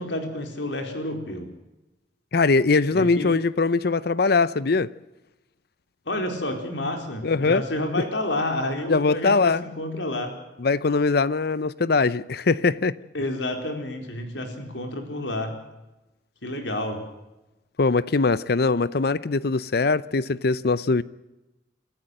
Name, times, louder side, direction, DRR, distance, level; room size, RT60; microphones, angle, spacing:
voice 1, 0.0-1.5 2.9-3.3 6.1-10.3 13.1-15.5 16.4-17.0, left 1 dB, 85° left, 4.3 m, -29 dB
voice 2, 2.3-4.9 7.2-7.6 8.9-9.6 10.6-12.9 17.8-21.0, left 4 dB, 60° left, 0.7 m, -21 dB
26.0 x 14.5 x 7.9 m
head